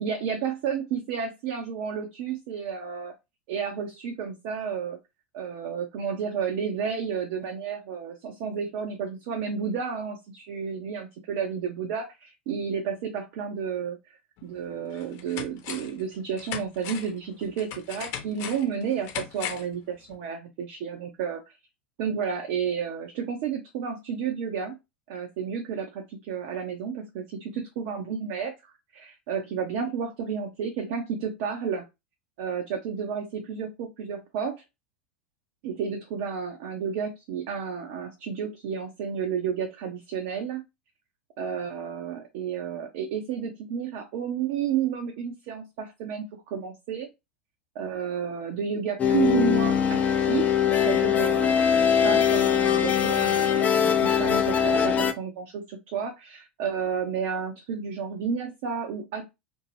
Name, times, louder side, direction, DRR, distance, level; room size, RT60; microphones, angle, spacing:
voice 1, 0.0-3.2 3.5-5.0 5.4-14.2 14.4-21.4 22.0-24.8 25.1-31.8 32.4-34.6 35.6-40.6 41.4-47.1 47.7-51.5 52.0-59.3, right 7 dB, 55° right, 4 dB, 0.6 m, -31 dB
sound 1, 14.4-14.5 14.9-16.0 16.4-19.8 20.1-20.2, left 9 dB, 50° left, 0.9 m, -38 dB
sound 2, 49.0-55.1, left 8 dB, 25° left, 0.5 m, -22 dB
2.6 x 2.1 x 3.1 m, 0.23 s
figure-of-eight pair, 80°, 6 cm